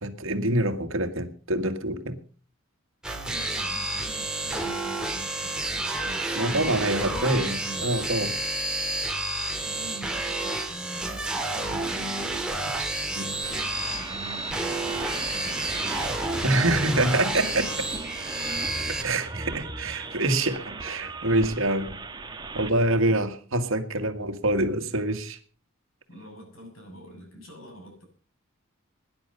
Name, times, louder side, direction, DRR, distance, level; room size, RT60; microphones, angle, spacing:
voice 1, 0.0-2.2 6.4-8.4 12.8-12.9 13.2-13.3 16.4-17.9 19.0-22.0 22.5-25.4, right 1 dB, 70° right, 9 dB, 1.8 m, -26 dB
sound 1, 3.0-19.0, right 2 dB, 5° right, 2.0 m, -30 dB
voice 2, 3.1-7.9 9.6-12.3 13.1-16.7 23.0-23.2 26.1-28.0, right 1 dB, 75° left, 2 dB, 7.6 m, -45 dB
sound 2, 13.4-22.7, right 3 dB, 20° right, 1.3 m, -37 dB
18.5 x 10.5 x 5.5 m, 0.41 s
head